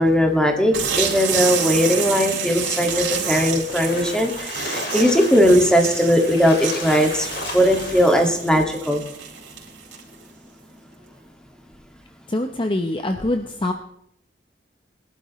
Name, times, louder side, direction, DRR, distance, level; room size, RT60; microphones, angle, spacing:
voice 1, 0.0-9.0, equal, 5° left, 2 dB, 2.0 m, -19 dB
sound 1, 0.7-10.2, right 7 dB, 80° right, 4.1 m, -29 dB
Splash splatter, 3.5-8.4, left 3 dB, 60° left, 2.7 m, -34 dB
voice 2, 12.3-13.7, left 1 dB, 30° left, 5 dB, 0.8 m, -24 dB
22.0 x 12.0 x 3.1 m, 0.70 s
head